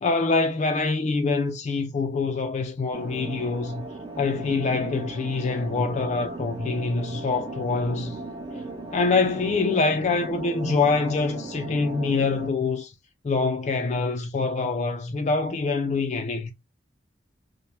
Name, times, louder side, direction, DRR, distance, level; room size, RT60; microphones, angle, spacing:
voice 1, 0.0-3.9 4.2-8.2 8.9-12.9 13.2-16.5, left 4 dB, 40° left, 0.4 m, -25 dB
sound 1, 2.9-12.5, right 2 dB, 25° right, 0.7 m, -37 dB
3.2 x 2.1 x 2.7 m
head